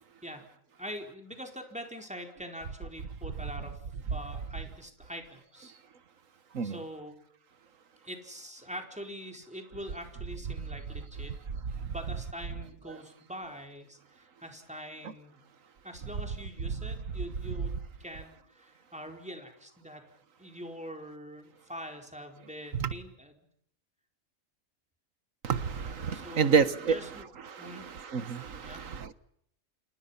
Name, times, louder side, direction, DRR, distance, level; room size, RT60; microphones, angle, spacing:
voice 1, 0.8-3.8 4.1-5.7 6.6-7.3 8.0-11.3 11.9-15.4 15.8-20.1 20.4-23.5 26.1-27.3 27.6-27.8 28.6-28.9, equal, 5° right, 4.4 m, -44 dB
voice 2, 25.4-27.1 27.6-27.8 28.1-29.1, right 6 dB, 90° right, 1.7 m, -28 dB
30.0 x 27.0 x 5.7 m
omnidirectional pair, 1.3 m